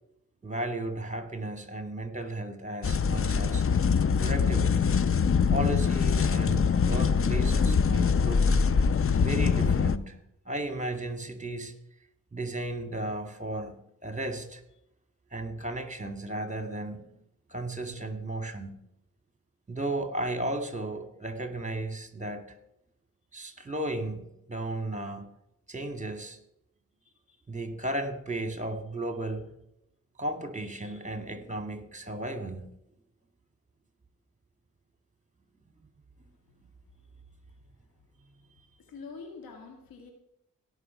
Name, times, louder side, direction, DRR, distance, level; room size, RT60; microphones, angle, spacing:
voice 1, 0.4-3.6 4.2-5.0 5.5-8.6 9.2-10.2 10.4-11.7 12.3-13.7 14.0-14.6 15.3-17.1 17.5-18.7 19.7-22.6 23.3-25.3 25.7-26.4 27.5-29.5 30.2-32.7, right 1 dB, 20° right, 8 dB, 2.5 m, -34 dB
sound 1, 2.8-10.0, left 6 dB, 40° left, 0.7 m, -24 dB
voice 2, 37.5-38.1 38.3-38.4 38.8-40.1, left 4 dB, 90° left, 4 dB, 1.9 m, -47 dB
17.5 x 6.2 x 5.9 m, 0.80 s
supercardioid pair, 45°, 34 cm